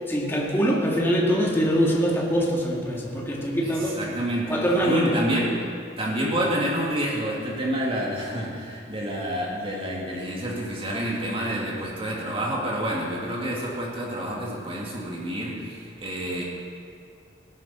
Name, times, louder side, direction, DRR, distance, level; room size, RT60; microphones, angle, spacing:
voice 1, 0.1-4.0 4.5-5.2, equal, 15° left, -3 dB, 2.0 m, -23 dB
voice 2, 3.6-16.4, right 1 dB, 30° right, -3 dB, 2.5 m, -28 dB
16.5 x 11.5 x 4.4 m, 2.3 s
head